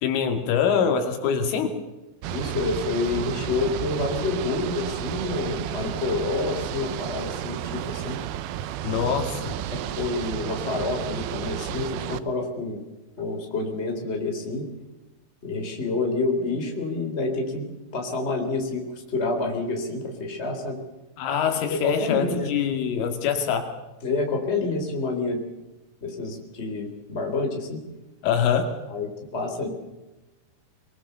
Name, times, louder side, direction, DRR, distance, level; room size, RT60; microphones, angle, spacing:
voice 1, 0.0-1.7 8.8-9.6 21.2-23.7 28.2-28.8, left 7 dB, 85° left, 5 dB, 4.8 m, -24 dB
sound 1, 2.2-12.2, right 11 dB, 80° right, 2.2 m, -32 dB
voice 2, 2.3-8.2 9.0-9.1 9.5-12.8 13.2-14.7 15.4-17.7 17.9-20.8 21.8-22.5 24.0-25.4 26.0-27.8 28.9-29.7, left 3 dB, 15° left, 3 dB, 3.3 m, -28 dB
23.5 x 23.0 x 6.9 m, 1.0 s
omnidirectional pair, 5.5 m